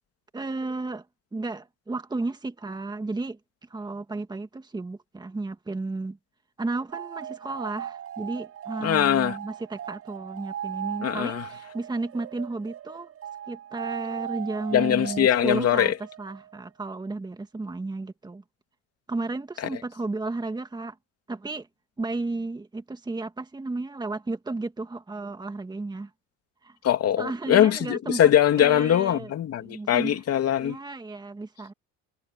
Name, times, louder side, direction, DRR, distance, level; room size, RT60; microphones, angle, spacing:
voice 1, 0.3-1.1 1.3-3.4 3.7-6.2 6.6-13.1 13.5-15.9 16.2-18.4 19.1-21.0 21.3-21.7 22.0-26.1 26.6-26.8 27.2-28.2 28.6-29.3 29.6-30.2 30.6-31.7, right 3 dB, 10° right, 2.0 m, -33 dB
sound 1, 6.9-16.7, right 10 dB, 40° right, 6.6 m, -38 dB
voice 2, 8.8-9.4 11.0-11.4 14.7-15.9 26.8-30.8, left 10 dB, 45° left, 2.7 m, -22 dB
cardioid pair, 115°, 34 cm